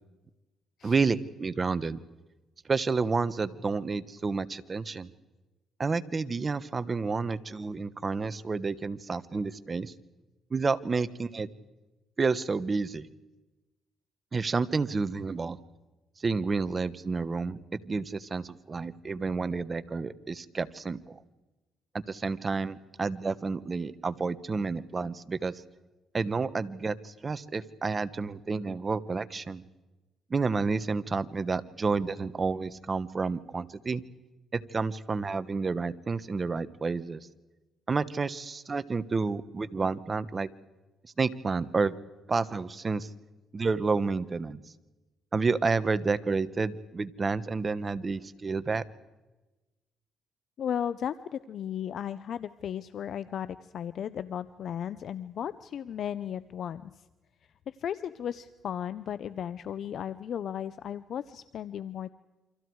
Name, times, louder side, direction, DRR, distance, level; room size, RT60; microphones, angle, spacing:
voice 1, 0.8-2.0 2.7-5.1 5.8-9.9 10.5-11.5 12.2-13.1 14.3-15.6 16.2-21.2 22.1-25.6 26.1-29.6 30.3-34.0 34.5-37.2 37.9-40.5 41.2-41.9 42.3-43.1 43.5-44.6 45.3-48.8, right 4 dB, 30° right, 14 dB, 1.1 m, -30 dB
voice 2, 50.6-56.9 57.7-62.1, left 9 dB, 65° left, 15 dB, 0.7 m, -35 dB
28.5 x 25.5 x 4.7 m, 1.1 s
cardioid pair, 90°, 0 cm